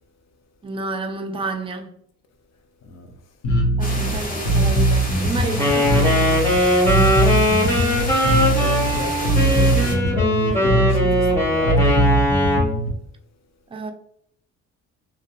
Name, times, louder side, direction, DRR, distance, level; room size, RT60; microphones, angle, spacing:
voice 1, 0.6-1.9 3.8-6.5 6.9-7.2 13.7-13.9, right 3 dB, 20° right, 0.4 m, -30 dB
voice 2, 2.8-3.2 8.4-12.1, left 3 dB, 60° left, 0.6 m, -33 dB
Bass guitar, 3.4-12.9, right 1 dB, 85° left, 0.8 m, -20 dB
sound 1, 3.8-10.0, left 1 dB, 30° left, 1.0 m, -31 dB
Wind instrument woodwind instrument, 5.6-12.7, left 1 dB, 10° left, 1.3 m, -20 dB
2.6 x 2.2 x 2.2 m
cardioid pair, 90°, 30 cm